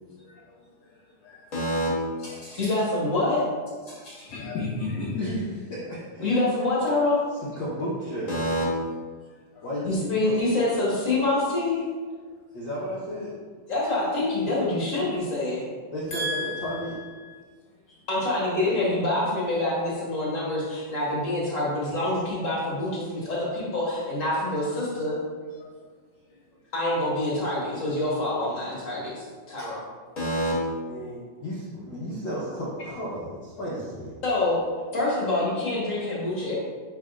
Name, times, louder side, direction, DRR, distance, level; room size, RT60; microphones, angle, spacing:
voice 1, 1.5-1.9 2.6-3.5 6.2-7.2 8.3-8.6 9.8-11.8 13.7-15.7 16.1-17.3 18.1-25.2 26.7-29.8 30.2-30.5 34.2-34.6 34.9-36.6, left 2 dB, 35° left, -6 dB, 1.3 m, -26 dB
voice 2, 2.2-2.7 3.9-5.2 9.6-9.7 25.6-25.7 29.6-29.7, left 3 dB, 80° left, -2 dB, 1.5 m, -34 dB
voice 3, 5.2-6.3 7.4-8.3 9.6-10.3 12.5-13.3 15.9-17.0 26.3-26.4 30.9-34.1, equal, 65° left, -8 dB, 1.1 m, -33 dB
10.0 x 4.1 x 2.5 m, 1.5 s
omnidirectional pair, 3.7 m